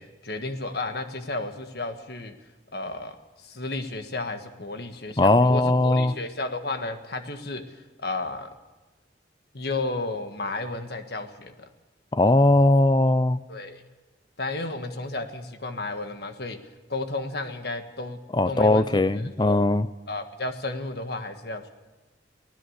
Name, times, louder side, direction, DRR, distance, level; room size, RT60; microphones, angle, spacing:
voice 1, 0.0-2.3 2.7-3.2 3.4-7.6 8.0-8.5 9.5-11.7 13.5-13.8 14.4-16.6 16.9-18.9 19.1-19.6 20.1-21.7, left 2 dB, 60° left, 7 dB, 1.6 m, -33 dB
voice 2, 5.2-6.1 12.1-13.4 18.3-19.9, left 2 dB, 25° left, 14 dB, 0.6 m, -19 dB
24.0 x 16.5 x 6.6 m, 1.2 s
head